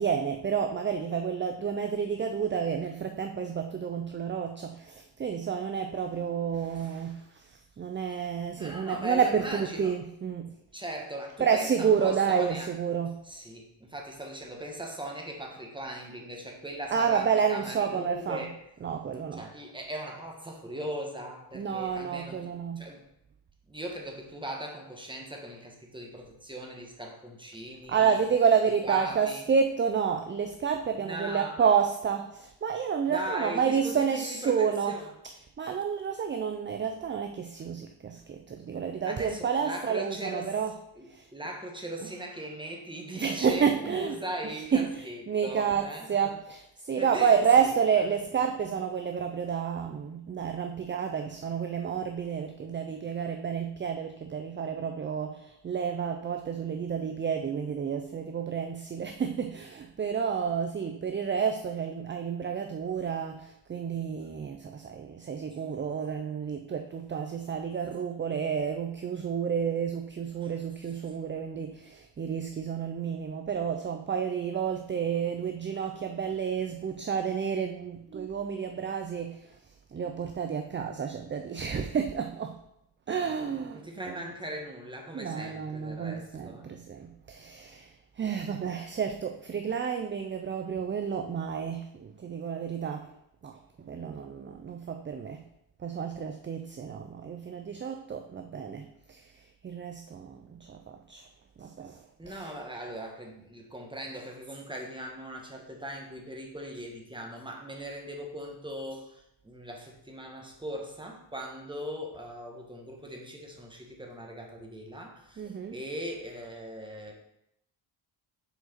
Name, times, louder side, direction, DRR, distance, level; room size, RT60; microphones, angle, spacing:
voice 1, 0.0-10.5 11.4-13.2 16.9-18.5 18.8-19.5 21.5-22.8 27.9-35.0 35.6-40.7 41.1-41.3 43.2-44.2 44.7-79.6 79.9-82.6 83.1-84.2 85.1-93.1 93.4-95.4 95.8-99.3 99.6-101.3 101.6-102.5 115.4-115.7, right 7 dB, 25° right, 5 dB, 0.3 m, -30 dB
voice 2, 8.6-9.9 10.7-12.7 13.2-18.6 19.3-23.1 23.7-28.2 28.8-29.4 31.0-31.6 33.1-35.1 39.1-40.5 41.0-46.1 47.0-47.7 70.4-70.5 70.8-71.1 83.7-86.7 102.2-117.1, right 1 dB, 10° right, 1 dB, 1.2 m, -39 dB
6.7 x 4.6 x 4.4 m, 0.80 s
cardioid pair, 115°, 50 cm